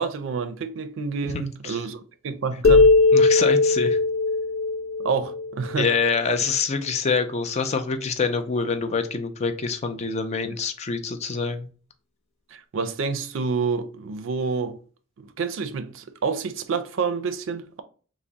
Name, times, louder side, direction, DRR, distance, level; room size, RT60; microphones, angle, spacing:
voice 1, 0.0-2.9 5.0-5.9 10.5-10.6 12.5-14.8 15.2-17.8, right 5 dB, 70° right, 0.4 m, -28 dB
voice 2, 1.3-1.7 3.1-4.0 5.8-11.7, left 5 dB, 35° left, 0.4 m, -26 dB
sound 1, 2.6-6.2, left 3 dB, 80° left, 0.6 m, -19 dB
3.4 x 2.0 x 3.9 m
head